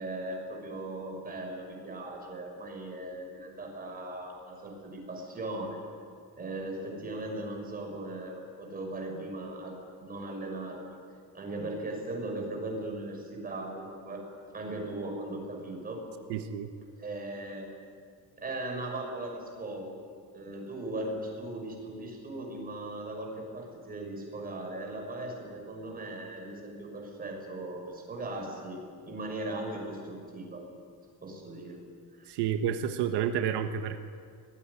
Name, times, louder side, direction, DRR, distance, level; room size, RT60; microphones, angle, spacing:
voice 1, 0.0-5.8 6.4-11.0 11.3-14.2 14.5-16.0 17.0-17.7 18.4-20.0 20.3-28.8 29.1-30.6 31.2-31.8 32.2-32.3, right 2 dB, 20° right, 1 dB, 6.1 m, -38 dB
voice 2, 16.3-16.7 32.3-34.0, right 9 dB, 85° right, 7 dB, 1.4 m, -30 dB
23.5 x 20.0 x 9.9 m, 2.2 s
cardioid pair, 175°, 40 cm